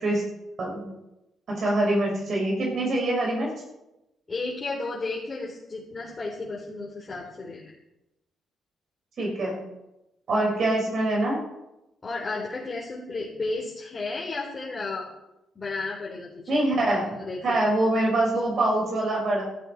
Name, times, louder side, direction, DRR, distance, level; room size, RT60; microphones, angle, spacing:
voice 1, 1.5-3.5 9.2-9.6 10.3-11.4 16.5-19.4, right 1 dB, 55° right, -1 dB, 6.1 m, -24 dB
voice 2, 4.3-7.7 12.0-15.1 15.6-16.6 17.2-17.6, left 3 dB, 30° left, -4 dB, 3.7 m, -33 dB
15.5 x 13.5 x 4.7 m, 0.93 s
cardioid pair, 90°, 0 cm